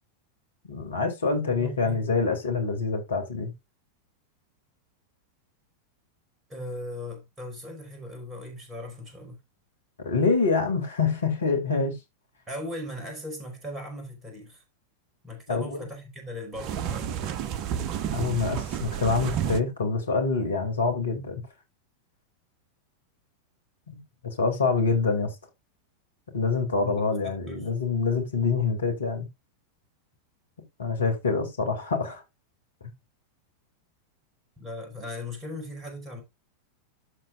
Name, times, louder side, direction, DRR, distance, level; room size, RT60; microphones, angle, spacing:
voice 1, 0.7-3.5 10.0-12.0 15.5-15.8 18.1-21.4 23.9-24.0 24.4-25.3 26.3-29.3 30.8-32.2, left 4 dB, 70° left, 2.9 m, -26 dB
voice 2, 1.6-2.2 6.5-9.4 12.5-14.6 15.2-17.2 26.8-27.0 27.2-27.7 34.6-36.2, left 1 dB, 15° right, 4.7 m, -38 dB
sound 1, 16.5-19.6, right 9 dB, 40° right, 0.7 m, -30 dB
12.5 x 7.5 x 2.5 m
figure-of-eight pair, 90°, 0 cm